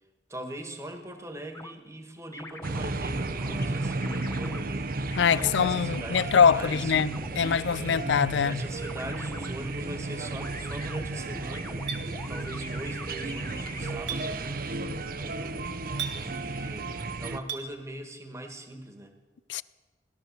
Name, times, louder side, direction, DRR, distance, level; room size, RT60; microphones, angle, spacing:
voice 1, 0.3-7.2 7.8-8.1 8.4-11.8 12.3-19.1, right 1 dB, 15° right, 1.5 m, -42 dB
sound 1, 1.5-1.7 2.3-2.9 3.4-4.6 5.1-6.2 7.0-8.2 8.8-9.5 10.3-14.0, left 2 dB, 15° left, 0.8 m, -44 dB
sound 2, 2.6-17.4, right 2 dB, 55° right, 0.8 m, -33 dB
voice 2, 5.2-8.6 19.5-19.6, left 6 dB, 80° left, 0.4 m, -23 dB
Chink clink, 11.9-12.0 14.1-14.2 16.0-16.2 17.5-17.7, right 8 dB, 75° right, 1.4 m, -33 dB
17.0 x 12.5 x 6.5 m
head